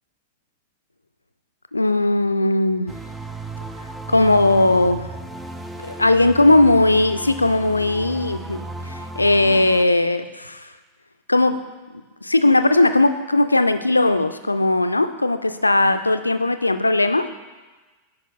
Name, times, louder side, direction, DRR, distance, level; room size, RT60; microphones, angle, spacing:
voice 1, 1.7-2.9 4.1-5.1 5.8-10.6 11.3-11.6 12.2-17.3, left 2 dB, 85° left, 10 dB, 0.3 m, -18 dB
sound 1, 2.9-9.8, right 2 dB, 10° right, 0.4 m, -35 dB
10.0 x 4.9 x 3.4 m, 1.3 s
figure-of-eight pair, 90°, 0 cm